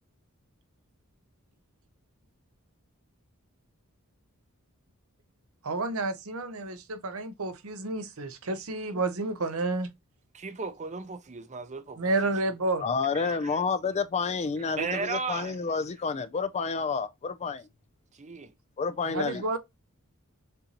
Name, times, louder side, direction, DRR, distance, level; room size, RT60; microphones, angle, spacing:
voice 1, 5.6-9.9 12.0-12.9 19.1-19.6, right 2 dB, 75° right, 0.8 m, -30 dB
voice 2, 10.3-12.1 13.1-13.6 14.8-15.6 18.2-18.5, right 4 dB, 35° right, 0.6 m, -35 dB
voice 3, 12.8-17.7 18.8-19.4, left 5 dB, 30° left, 0.4 m, -29 dB
6.7 x 2.6 x 2.9 m
head